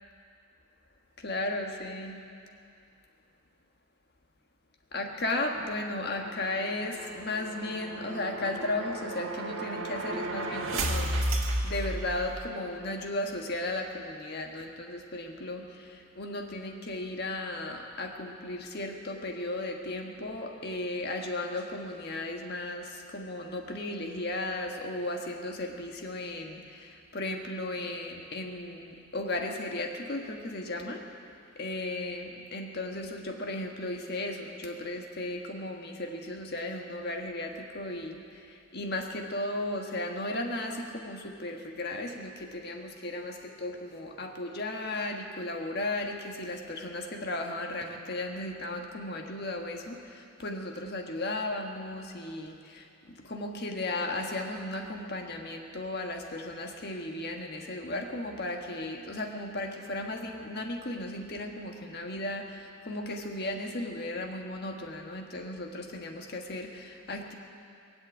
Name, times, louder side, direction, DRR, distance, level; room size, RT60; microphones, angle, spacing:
voice 1, 1.2-2.2 4.9-11.1 11.6-31.1 31.5-52.9 53.2-67.3, left 2 dB, 50° left, 2 dB, 1.5 m, -35 dB
sound 1, 5.9-12.6, right 1 dB, 85° right, 1.6 m, -34 dB
22.0 x 8.0 x 8.2 m, 2.5 s
head